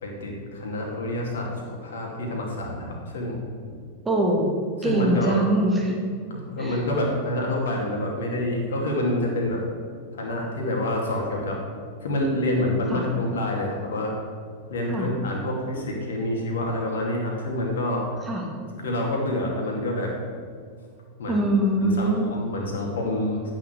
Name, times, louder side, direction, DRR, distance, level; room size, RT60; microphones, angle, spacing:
voice 1, 0.0-3.4 4.8-5.5 6.3-9.6 10.1-11.6 12.0-14.1 14.7-18.1 18.8-20.1 21.2-21.4 21.8-23.5, left 1 dB, 70° left, -1 dB, 2.4 m, -27 dB
voice 2, 4.0-4.5 4.8-6.0 6.6-6.8 12.9-13.0 14.9-15.1 18.3-18.4 21.3-22.3, right 1 dB, 15° right, -1 dB, 2.7 m, -23 dB
8.8 x 6.9 x 8.2 m, 2.1 s
figure-of-eight pair, 90°, 0 cm